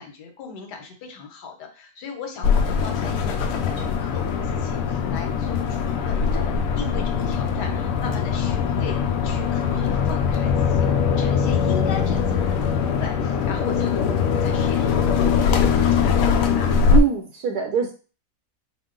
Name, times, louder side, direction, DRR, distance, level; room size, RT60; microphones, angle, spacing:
voice 1, 0.0-16.8, left 5 dB, 85° left, 3 dB, 1.4 m, -38 dB
sound 1, 2.4-17.0, left 6 dB, 70° left, 0.9 m, -21 dB
voice 2, 16.9-17.9, right 9 dB, 75° right, 3 dB, 1.2 m, -23 dB
4.5 x 2.1 x 3.7 m, 0.34 s
omnidirectional pair, 1.7 m